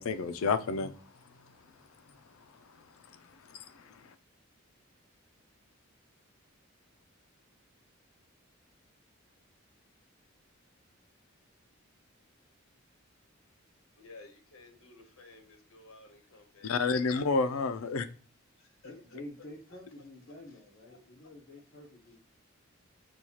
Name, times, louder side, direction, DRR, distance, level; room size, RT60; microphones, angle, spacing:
voice 1, 0.0-1.9 2.1-4.2 16.6-18.1, left 4 dB, 90° left, 11 dB, 0.4 m, -32 dB
voice 2, 14.0-17.9 18.6-19.2 20.3-20.6 20.9-21.0, left 3 dB, 75° left, 5 dB, 1.0 m, -56 dB
voice 3, 18.8-22.2, left 1 dB, 50° left, -3 dB, 0.9 m, -48 dB
6.1 x 2.3 x 2.8 m, 0.39 s
head